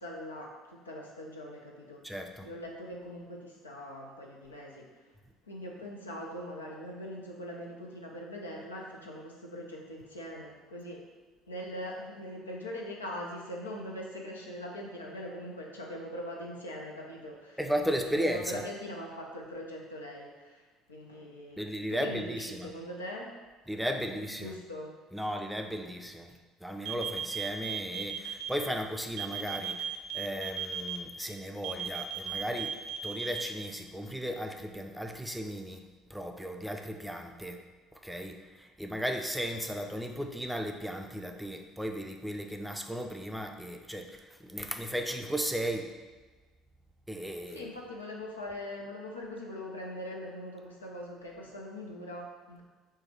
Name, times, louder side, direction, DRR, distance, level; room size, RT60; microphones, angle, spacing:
voice 1, 0.0-2.1 2.4-5.2 5.4-11.1 11.5-17.6 17.9-23.3 23.9-24.9 47.5-52.6, equal, 85° left, -1 dB, 0.6 m, -42 dB
voice 2, 2.0-2.5 17.6-18.6 21.6-22.7 23.7-24.6 25.1-26.3 26.6-32.8 33.0-35.8 36.1-37.6 38.0-45.9 47.1-47.7, equal, ahead, 4 dB, 0.5 m, -35 dB
sound 1, 26.8-28.5 29.2-31.0 31.6-33.4, right 9 dB, 55° right, 0.5 m, -35 dB
4.7 x 2.2 x 4.5 m, 1.3 s
figure-of-eight pair, 60°, 0 cm